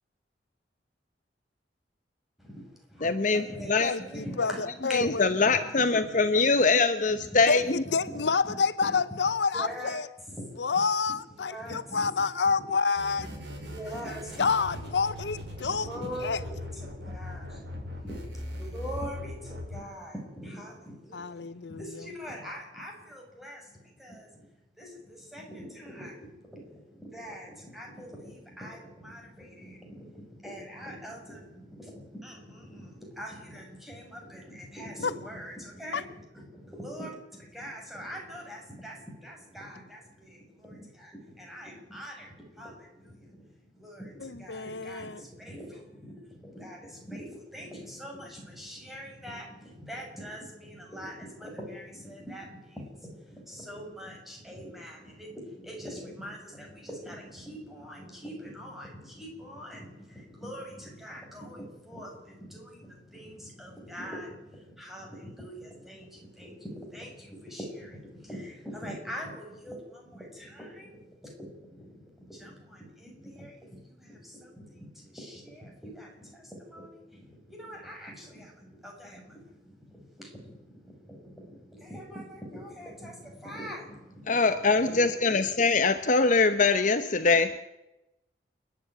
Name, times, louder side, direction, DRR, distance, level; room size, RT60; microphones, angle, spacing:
voice 1, 2.4-4.6 4.9-6.4 7.1-7.8 8.1-8.5 9.5-10.0 10.3-11.1 11.5-12.1 13.3-14.5 15.6-24.5 24.8-85.4 85.7-85.8, equal, ahead, -1 dB, 6.3 m, -43 dB
voice 2, 3.0-3.4 3.7-3.9 4.9-7.8 84.3-87.5, left 4 dB, 45° left, 10 dB, 0.9 m, -23 dB
voice 3, 3.8-5.3 7.5-7.6 7.9-10.1 10.6-13.3 14.4-15.9 16.2-16.4 21.1-22.0 35.0-35.1 35.9-36.0 44.2-45.2, left 5 dB, 80° left, 15 dB, 0.7 m, -28 dB
sound 1, 12.9-19.8, left 1 dB, 85° right, 5.7 m, -40 dB
29.5 x 10.0 x 9.2 m, 0.95 s
head